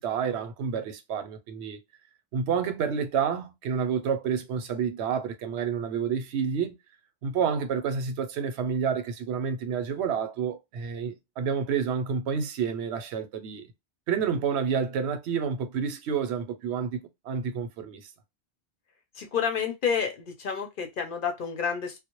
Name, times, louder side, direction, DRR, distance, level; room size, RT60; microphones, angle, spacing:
voice 1, 0.0-1.8 2.3-6.8 7.2-13.7 14.1-18.1, right 6 dB, 85° right, 0.8 m, -29 dB
voice 2, 19.2-21.9, left 6 dB, 60° left, 0.7 m, -29 dB
2.1 x 2.0 x 2.9 m
omnidirectional pair, 1.1 m